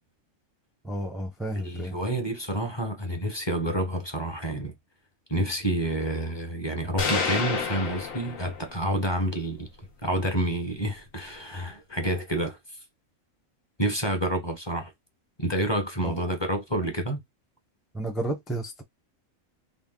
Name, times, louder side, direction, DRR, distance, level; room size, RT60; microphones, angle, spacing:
voice 1, 0.8-2.0 16.0-16.2 17.9-18.8, right 1 dB, ahead, 0.5 m, -32 dB
voice 2, 1.5-4.7 5.3-9.7 10.0-12.6 13.8-14.9 15.4-17.2, right 1 dB, 25° left, 0.8 m, -28 dB
sound 1, 7.0-8.9, left 5 dB, 75° left, 1.4 m, -29 dB
3.5 x 2.4 x 3.7 m
omnidirectional pair, 1.4 m